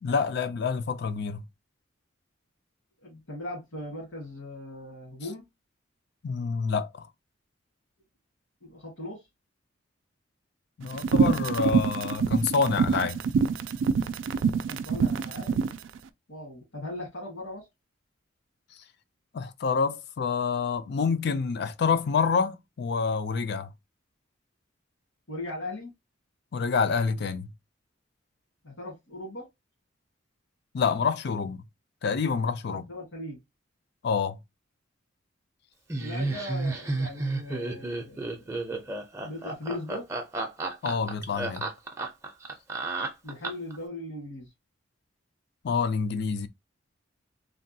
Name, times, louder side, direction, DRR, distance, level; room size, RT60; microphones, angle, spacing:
voice 1, 0.0-1.4 6.2-7.1 10.8-13.2 19.3-23.7 26.5-27.5 30.7-31.6 32.0-32.8 34.0-34.4 40.8-41.7 45.6-46.5, left 5 dB, 60° left, 0.4 m, -27 dB
voice 2, 3.0-5.4 8.6-9.2 14.7-15.6 16.3-17.7 25.3-25.9 28.6-29.4 32.7-33.4 36.0-38.4 39.2-40.0 43.2-44.5, left 1 dB, 80° left, 1.5 m, -39 dB
sound 1, 10.9-15.8, right 5 dB, 75° right, 0.3 m, -25 dB
Laughter, 35.9-43.8, right 2 dB, 15° right, 0.5 m, -32 dB
3.4 x 2.2 x 2.7 m
head